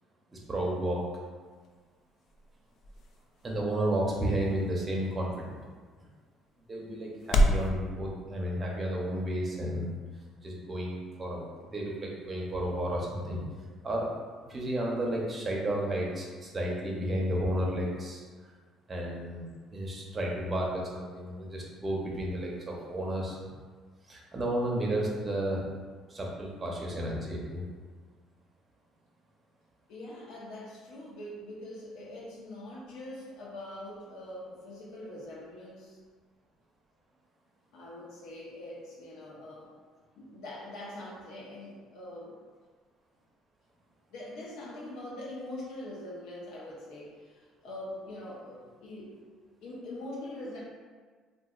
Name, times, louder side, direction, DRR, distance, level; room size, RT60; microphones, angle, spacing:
voice 1, 0.3-1.0 3.4-5.6 6.7-9.9 10.4-13.4 13.8-14.1 14.5-18.2 18.9-23.4 24.1-25.6 26.1-27.6, right 1 dB, 25° right, -2 dB, 0.7 m, -32 dB
sound 1, 1.4-7.7, equal, 55° left, 0.3 m, -33 dB
voice 2, 29.9-36.0 37.7-39.7 40.2-42.4 44.1-49.1 49.6-50.6, left 1 dB, 80° left, -5 dB, 0.9 m, -43 dB
3.8 x 2.4 x 2.4 m, 1.5 s
cardioid pair, 115°, 0 cm